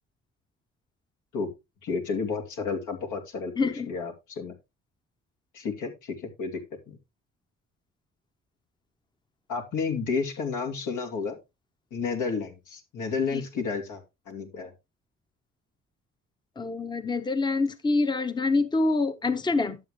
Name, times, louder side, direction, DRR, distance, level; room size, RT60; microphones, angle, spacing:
voice 1, 1.8-3.5 3.9-4.5 5.5-6.6 6.9-7.0 9.5-11.4 11.9-14.7, left 5 dB, 80° left, 2.6 m, -31 dB
voice 2, 3.6-3.9 13.3-13.4 16.6-19.8, left 3 dB, 15° left, 0.8 m, -26 dB
11.5 x 7.1 x 3.1 m
cardioid pair, 90°, 30 cm